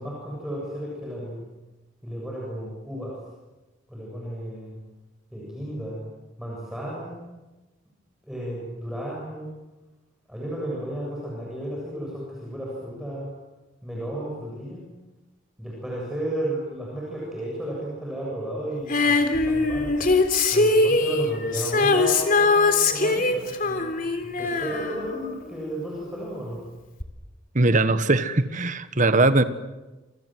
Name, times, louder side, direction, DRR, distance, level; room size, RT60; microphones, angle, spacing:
voice 1, 0.0-1.4 2.0-3.2 3.9-4.8 5.3-6.0 6.4-7.2 8.2-9.5 10.3-13.3 13.8-14.9 15.6-19.9 20.5-26.6, right 1 dB, 5° right, -4 dB, 7.5 m, -33 dB
Female singing, 18.9-25.9 27.0-27.1, left 3 dB, 45° left, 3.4 m, -22 dB
voice 2, 27.5-29.4, right 2 dB, 40° right, 11 dB, 1.5 m, -20 dB
28.0 x 27.0 x 7.8 m, 1.1 s
head